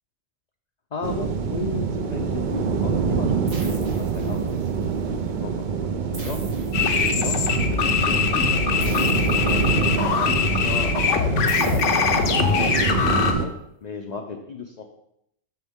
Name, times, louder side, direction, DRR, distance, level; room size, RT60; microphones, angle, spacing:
voice 1, 0.9-4.6 4.8-5.5 5.8-6.4 6.9-7.4 8.1-10.9 11.3-13.5 13.8-14.8, left 4 dB, 50° left, 2 dB, 0.5 m, -35 dB
sound 1, 1.0-13.5, right 6 dB, 55° right, 0.5 m, -25 dB
sound 2, 3.5-4.8 6.1-7.5 8.8-10.2 11.5-12.8, right 3 dB, 85° right, 1.7 m, -43 dB
sound 3, 6.7-13.3, left 6 dB, 70° left, 1.0 m, -22 dB
7.6 x 6.3 x 3.6 m, 0.77 s
omnidirectional pair, 1.3 m